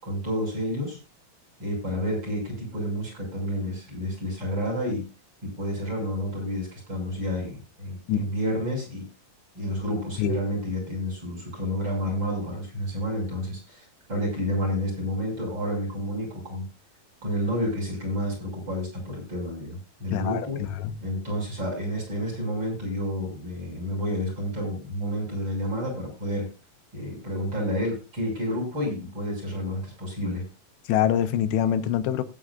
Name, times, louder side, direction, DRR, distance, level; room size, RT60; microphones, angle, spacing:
voice 1, 0.0-1.0 1.6-5.1 5.4-9.1 9.6-16.7 17.2-20.7 21.0-26.5 26.9-30.5, equal, 25° right, 6.9 m, -30 dB
voice 2, 20.1-20.4 20.7-20.9 30.9-32.2, left 10 dB, 85° left, 3.2 m, -24 dB
19.5 x 9.4 x 2.5 m
omnidirectional pair, 4.9 m